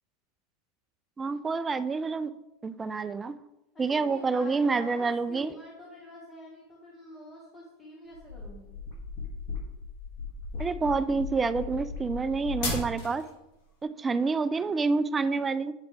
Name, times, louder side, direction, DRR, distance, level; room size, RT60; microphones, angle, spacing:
voice 1, 1.2-2.3 2.6-3.3 3.8-5.5 10.6-13.3 13.8-15.7, right 4 dB, 20° right, 14 dB, 0.4 m, -28 dB
voice 2, 3.7-8.8, equal, 20° left, -4 dB, 1.6 m, -47 dB
sound 1, 8.1-13.3, left 3 dB, 55° left, 2.3 m, -36 dB
8.2 x 5.0 x 3.4 m, 0.96 s
hypercardioid pair, 95°, 0 cm